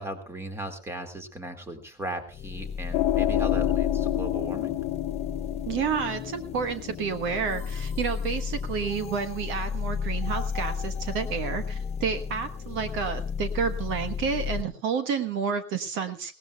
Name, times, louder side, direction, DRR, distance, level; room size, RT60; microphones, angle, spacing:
voice 1, 0.0-4.8, right 1 dB, 10° right, 7 dB, 2.1 m, -37 dB
sound 1, 2.3-14.6, left 6 dB, 20° left, 1.0 m, -33 dB
sound 2, 2.9-8.1, left 15 dB, 50° left, 1.2 m, -29 dB
voice 2, 5.7-16.3, right 6 dB, 40° right, 10 dB, 1.2 m, -30 dB
20.0 x 18.0 x 2.3 m, 0.36 s
supercardioid pair, 160°, 32 cm